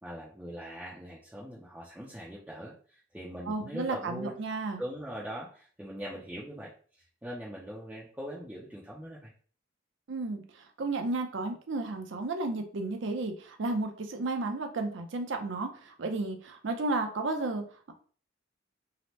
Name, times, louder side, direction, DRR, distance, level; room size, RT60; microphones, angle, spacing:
voice 1, 0.0-4.4 4.8-9.3, equal, 5° right, -6 dB, 0.4 m, -41 dB
voice 2, 3.5-4.8 10.1-10.4 10.8-17.9, right 3 dB, 65° right, 5 dB, 0.5 m, -33 dB
2.8 x 2.1 x 3.0 m, 0.43 s
head